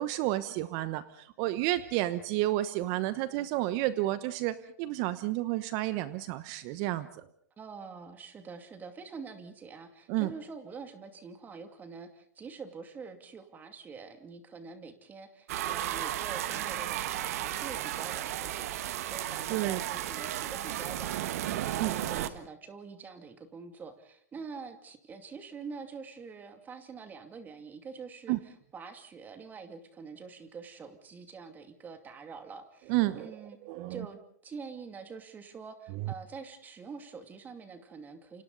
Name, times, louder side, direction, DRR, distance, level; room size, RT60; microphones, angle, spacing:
voice 1, 0.0-7.3 10.1-10.3 19.5-19.9 21.8-22.0 28.3-28.4 32.9-33.3 33.6-34.1 36.0-36.1, right 16 dB, 40° right, 14 dB, 1.1 m, -31 dB
voice 2, 7.6-33.6 33.9-38.4, right 5 dB, 20° right, 7 dB, 2.5 m, -45 dB
sound 1, 15.5-22.3, right 12 dB, 60° right, 1.5 m, -34 dB
28.5 x 26.5 x 4.0 m, 0.65 s
hypercardioid pair, 115°, 9 cm